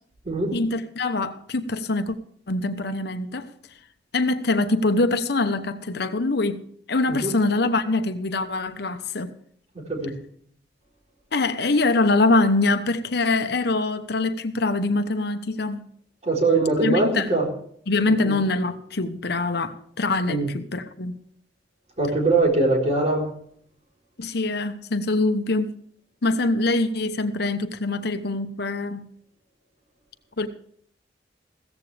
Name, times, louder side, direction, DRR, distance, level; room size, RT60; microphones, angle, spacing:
voice 1, 0.5-2.2 2.5-3.5 4.1-6.6 6.9-9.3 11.3-15.9 16.8-17.3 17.9-21.1 24.2-25.7 26.2-29.1 30.4-30.5, left 2 dB, 60° left, 9 dB, 1.0 m, -24 dB
voice 2, 9.7-10.1 16.2-17.5 18.2-18.3 20.3-20.5 22.0-23.3, right 2 dB, 40° right, -1 dB, 4.1 m, -22 dB
16.0 x 14.5 x 3.4 m, 0.62 s
head